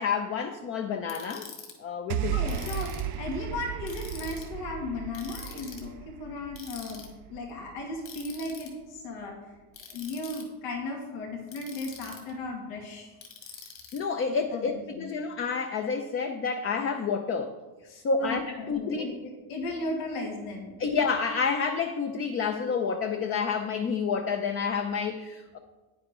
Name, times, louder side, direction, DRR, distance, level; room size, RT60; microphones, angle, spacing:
voice 1, 0.0-1.5 1.8-2.4 13.9-17.6 18.0-19.2 20.8-25.6, left 5 dB, 30° left, 6 dB, 0.6 m, -29 dB
Ratchet pawl, 1.1-1.7 2.5-3.1 3.9-4.5 5.1-5.8 6.6-7.1 8.1-8.7 9.7-10.4 11.5-12.3 13.2-14.0, left 6 dB, 45° left, 2.5 m, -44 dB
voice 2, 2.1-9.4 9.9-13.1 14.3-15.1 17.9-20.7, left 2 dB, 85° left, 0 dB, 2.3 m, -36 dB
sound 1, 2.1-8.5, right 11 dB, 45° right, 0.5 m, -35 dB
9.8 x 9.8 x 3.7 m, 1.2 s
cardioid pair, 145°, 44 cm